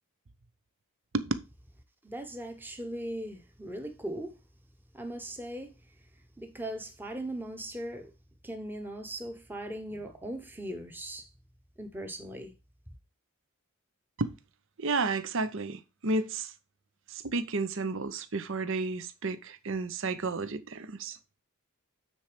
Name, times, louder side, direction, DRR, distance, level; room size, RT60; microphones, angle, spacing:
voice 1, 2.0-4.3 4.9-5.7 6.4-8.1 8.4-11.3 11.8-12.5, right 1 dB, 10° right, 1.0 m, -39 dB
voice 2, 14.8-16.5 17.1-21.2, right 3 dB, 60° right, 0.8 m, -32 dB
9.1 x 4.4 x 5.0 m
head